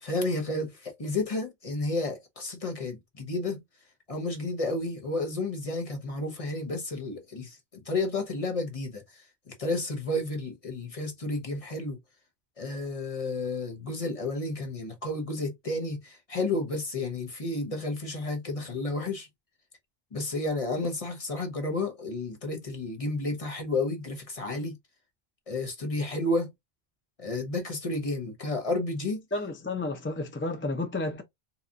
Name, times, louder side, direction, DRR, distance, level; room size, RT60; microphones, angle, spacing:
voice 1, 0.0-3.6 4.1-7.6 7.9-12.0 12.6-19.3 20.1-24.8 25.5-26.5 27.2-29.2, left 2 dB, 35° left, 1.0 m, -31 dB
voice 2, 29.3-31.2, left 2 dB, 20° left, 0.4 m, -31 dB
4.0 x 2.9 x 2.4 m
omnidirectional pair, 1.0 m